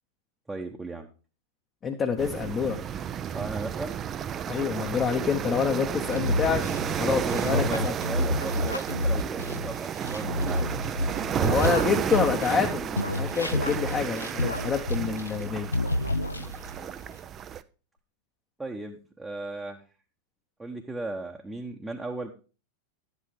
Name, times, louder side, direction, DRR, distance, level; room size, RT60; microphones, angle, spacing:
voice 1, 0.5-1.1 3.3-4.0 7.0-10.7 16.8-17.1 18.6-19.8 20.6-22.3, right 2 dB, 10° right, 1 dB, 0.9 m, -36 dB
voice 2, 1.8-2.8 4.5-6.6 7.0-7.9 11.3-15.7, left 6 dB, 25° left, 4 dB, 0.9 m, -27 dB
sound 1, 2.2-17.6, right 9 dB, 25° right, 0.4 m, -32 dB
sound 2, 6.1-12.7 13.0-15.5 15.7-16.8, left 1 dB, 80° left, 0.5 m, -30 dB
11.0 x 8.3 x 3.3 m, 0.36 s
figure-of-eight pair, 90°, 0 cm